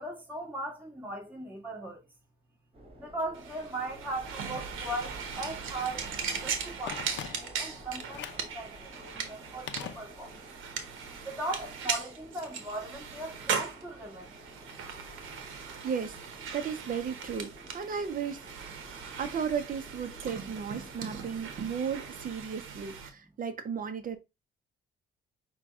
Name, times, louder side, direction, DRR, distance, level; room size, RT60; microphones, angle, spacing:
voice 1, 0.0-2.0 3.0-6.1 6.4-10.3 11.2-14.3, right 1 dB, 10° right, 2.0 m, -38 dB
sound 1, 2.7-22.3, right 1 dB, 30° right, 1.8 m, -51 dB
sound 2, 3.3-23.1, right 6 dB, 90° right, 0.9 m, -39 dB
Telephone, 6.9-7.7 8.1-8.5 9.7-10.5 10.8-10.9, left 9 dB, 65° left, 0.6 m, -42 dB
voice 2, 15.4-16.2 16.5-18.7 19.2-24.2, right 7 dB, 45° right, 0.7 m, -35 dB
5.8 x 2.3 x 3.5 m
cardioid pair, 90°, 20 cm